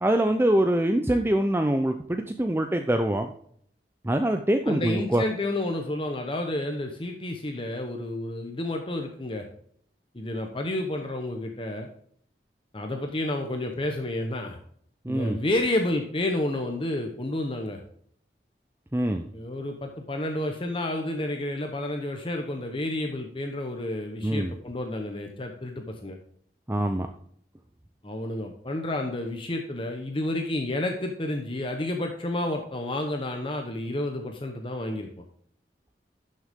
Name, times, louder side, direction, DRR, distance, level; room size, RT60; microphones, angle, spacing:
voice 1, 0.0-3.3 4.0-5.2 15.0-15.4 18.9-19.3 24.2-24.5 26.7-27.1, right 1 dB, 15° right, 6 dB, 0.5 m, -24 dB
voice 2, 4.7-9.5 10.1-11.9 12.7-14.6 15.1-17.8 19.3-26.2 28.0-35.2, left 1 dB, 30° left, 4 dB, 1.0 m, -30 dB
11.5 x 6.6 x 3.6 m, 0.63 s
head